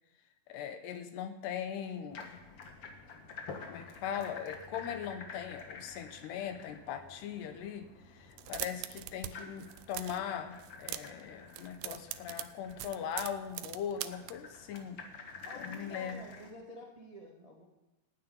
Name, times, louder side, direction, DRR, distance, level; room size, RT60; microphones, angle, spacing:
voice 1, 0.5-2.4 3.7-15.0 15.5-16.3, left 8 dB, 80° left, 8 dB, 3.1 m, -40 dB
sound 1, 2.1-16.5, left 4 dB, 60° left, 1.5 m, -50 dB
sound 2, 8.3-9.3 9.6-10.2 10.6-11.2 11.5-14.3, right 15 dB, 90° right, 2.9 m, -41 dB
voice 2, 15.4-17.6, left 1 dB, 20° right, 0 dB, 1.0 m, -49 dB
14.5 x 9.3 x 9.6 m, 1.1 s
omnidirectional pair, 4.9 m